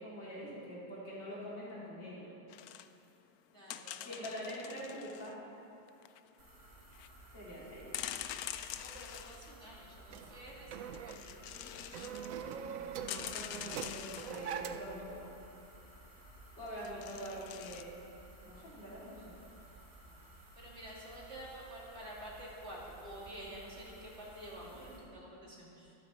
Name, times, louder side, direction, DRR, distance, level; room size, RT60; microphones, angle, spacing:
voice 1, 0.0-2.3 4.0-5.4 7.3-7.9 13.3-15.3 16.6-18.0 18.4-19.3 24.7-25.2 25.4-25.5, equal, 60° left, -8 dB, 4.4 m, -45 dB
sound 1, 2.5-2.9 3.7-5.3 5.9-6.2 6.9-7.1 7.9-9.7 10.9-12.3 12.7-12.8 13.0-14.6 16.7-17.8, left 11 dB, 80° left, 0.8 m, -44 dB
voice 2, 3.5-4.6 7.4-7.7 8.8-12.2 16.9-17.0 20.1-20.2 20.6-25.9, right 1 dB, 35° right, -5 dB, 2.7 m, -50 dB
sound 2, 6.4-25.0, right 1 dB, 50° right, 3.2 m, -56 dB
sound 3, 10.1-15.0, right 8 dB, 85° right, 0.7 m, -43 dB
23.5 x 9.2 x 4.1 m, 2.7 s
omnidirectional pair, 2.1 m